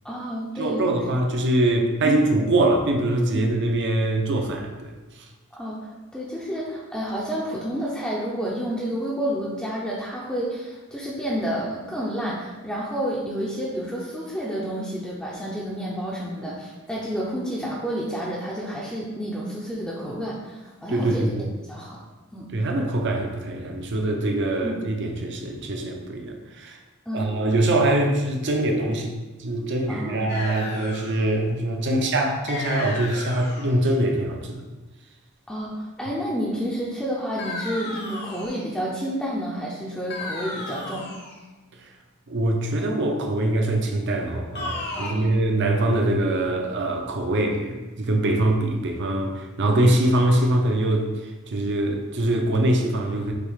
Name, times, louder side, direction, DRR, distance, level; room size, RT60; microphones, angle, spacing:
voice 1, 0.0-0.9 2.0-2.3 3.3-3.5 5.5-21.2 21.7-22.0 22.3-22.5 24.6-24.8 27.1-27.3 28.4-28.5 29.9-30.3 31.9-32.1 35.5-41.1 44.9-45.4, equal, 5° left, -6 dB, 0.5 m, -30 dB
voice 2, 0.6-4.9 16.4-16.5 20.9-21.5 22.5-26.8 27.1-29.1 29.4-34.6 42.3-53.3, right 1 dB, 55° right, 3 dB, 0.6 m, -23 dB
sound 1, 30.3-31.3 32.5-33.8 37.4-38.7 40.1-41.4 44.5-45.1, left 2 dB, 50° left, 0.8 m, -33 dB
6.5 x 2.3 x 3.2 m, 1.2 s
head